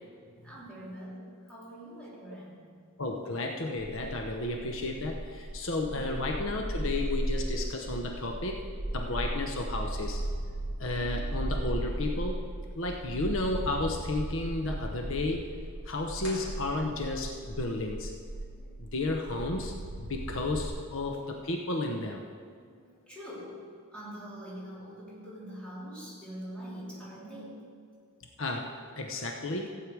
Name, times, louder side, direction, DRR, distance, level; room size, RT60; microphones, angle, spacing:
voice 1, 0.4-2.9 5.9-6.4 11.0-11.5 18.6-18.9 20.9-21.4 22.7-27.8, equal, 5° left, -8 dB, 3.3 m, -45 dB
voice 2, 3.0-8.6 8.9-10.2 10.8-12.4 12.8-15.5 15.9-18.1 18.8-22.2 28.4-29.7, left 2 dB, 60° left, 2 dB, 0.9 m, -33 dB
sound 1, 3.8-20.7, right 1 dB, 30° right, 1.8 m, -36 dB
sound 2, 16.2-17.4, left 2 dB, 80° left, 2.9 m, -47 dB
15.5 x 8.6 x 4.7 m, 2.1 s
head